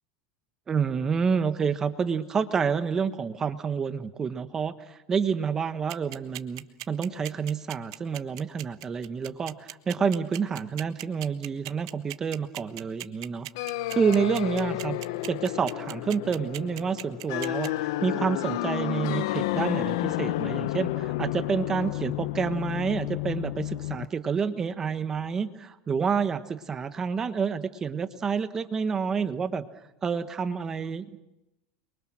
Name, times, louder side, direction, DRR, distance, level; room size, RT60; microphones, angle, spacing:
voice 1, 0.7-13.5 13.9-15.0 15.3-29.6 30.0-31.2, right 6 dB, 20° right, 11 dB, 1.2 m, -28 dB
sound 1, 5.9-17.7, right 16 dB, 80° right, 1.3 m, -38 dB
sound 2, 13.6-24.1, left 16 dB, 75° left, 0.9 m, -31 dB
29.5 x 23.5 x 6.2 m, 0.91 s
supercardioid pair, 145°, 3 cm